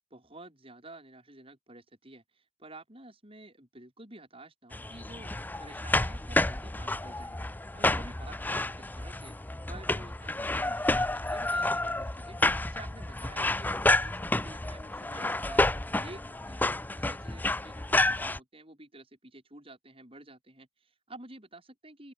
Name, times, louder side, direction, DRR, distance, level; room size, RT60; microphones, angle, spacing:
voice 1, 0.1-5.3 5.6-9.4 9.7-12.4 12.7-15.6 15.9-22.1, right 2 dB, 25° right, 5.7 m, -50 dB
sound 1, 4.7-18.4, left 2 dB, 10° left, 0.5 m, -30 dB
open air
head